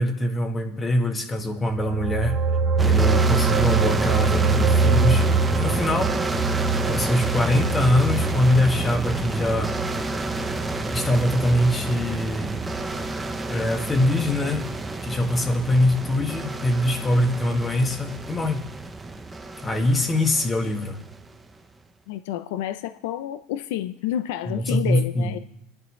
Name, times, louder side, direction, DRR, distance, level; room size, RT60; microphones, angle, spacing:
voice 1, 0.0-2.4 2.8-6.2 6.8-9.8 10.9-12.6 13.5-14.7 15.0-18.6 19.6-21.0 24.5-25.4, left 1 dB, 20° left, 4 dB, 1.8 m, -23 dB
sound 1, 1.6-12.3 12.6-12.8, right 4 dB, 35° right, 1.0 m, -24 dB
sound 2, 2.8-21.4, right 2 dB, 15° right, 0.9 m, -29 dB
voice 2, 22.1-25.4, left 12 dB, 75° left, 10 dB, 0.6 m, -29 dB
25.5 x 11.0 x 3.2 m, 0.84 s
supercardioid pair, 115°, 0 cm